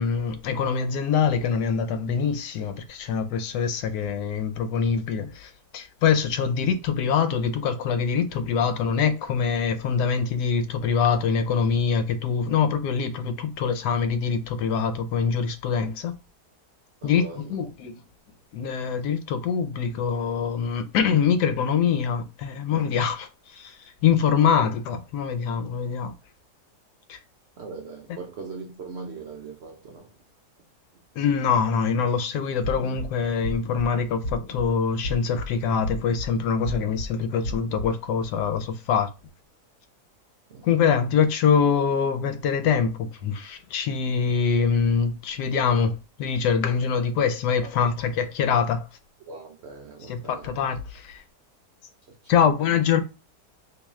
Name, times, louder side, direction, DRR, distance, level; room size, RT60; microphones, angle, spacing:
voice 1, 0.0-16.2 17.0-18.0 18.5-23.7 24.0-26.1 27.1-27.2 31.2-39.1 40.6-48.9 50.1-51.2 52.3-53.0, left 6 dB, 85° left, 1.2 m, -24 dB
voice 2, 17.0-17.6 27.6-30.1 40.5-40.7 47.6-47.7 49.3-50.6 52.1-52.5, right 4 dB, 75° right, 0.6 m, -40 dB
sound 1, 32.6-33.0 33.4-33.8 34.2-34.6 35.0-35.5 35.8-36.3 36.6-37.1 37.4-37.9, equal, 55° left, 1.2 m, -33 dB
3.1 x 2.9 x 3.5 m
omnidirectional pair, 1.7 m